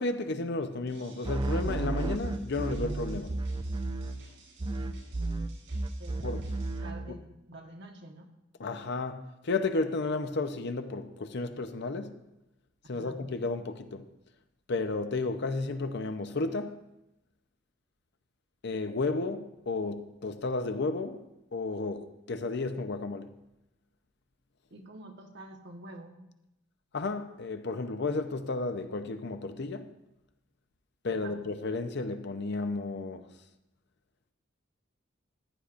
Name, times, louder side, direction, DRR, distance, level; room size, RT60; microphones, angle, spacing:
voice 1, 0.0-3.4 6.2-6.4 7.1-7.2 8.6-12.2 12.9-14.1 14.7-16.8 18.6-21.2 21.5-23.3 26.9-29.9 31.0-33.2, left 3 dB, 60° left, 0.7 m, -33 dB
sound 1, 0.9-6.8, right 2 dB, 90° right, 4.6 m, -56 dB
sound 2, 1.2-4.3 4.6-7.2, right 2 dB, 25° right, 0.4 m, -33 dB
voice 2, 6.0-6.5 6.8-8.3 12.9-13.2 24.7-26.3 31.1-31.4, right 2 dB, 60° right, 1.3 m, -48 dB
14.5 x 10.0 x 2.6 m
head